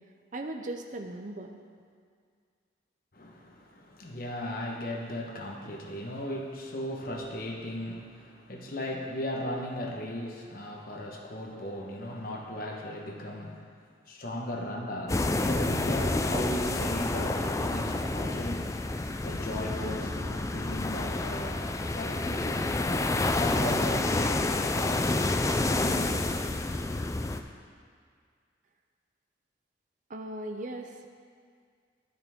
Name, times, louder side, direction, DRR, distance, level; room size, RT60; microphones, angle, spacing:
voice 1, 0.3-1.5 30.1-31.0, right 1 dB, 40° right, 4 dB, 0.6 m, -37 dB
voice 2, 3.1-13.7 14.1-18.6 19.2-25.0 25.7-26.1, left 1 dB, 50° left, 0 dB, 1.1 m, -37 dB
sound 1, 15.1-27.4, left 2 dB, 15° left, 0.3 m, -29 dB
11.5 x 9.6 x 3.6 m, 2.1 s
head